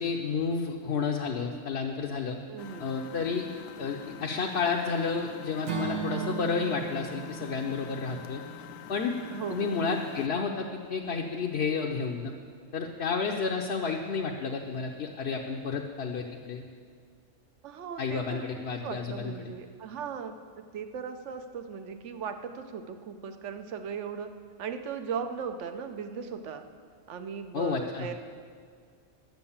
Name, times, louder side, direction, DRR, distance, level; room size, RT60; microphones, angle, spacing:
voice 1, 0.0-2.4 2.8-3.4 3.8-8.4 8.9-9.2 9.5-12.3 12.7-16.6 18.0-19.5 27.5-28.1, left 5 dB, 60° left, 0 dB, 0.9 m, -31 dB
voice 2, 2.5-2.9 9.3-9.7 17.6-18.4 18.8-24.3 24.6-26.6 27.1-28.1, right 6 dB, 65° right, 8 dB, 1.1 m, -38 dB
Engine, 2.6-10.3, left 10 dB, 85° left, 1.0 m, -46 dB
Acoustic guitar / Strum, 5.6-9.8, right 7 dB, 90° right, 1.6 m, -37 dB
10.5 x 7.5 x 7.2 m, 2.1 s
omnidirectional pair, 1.3 m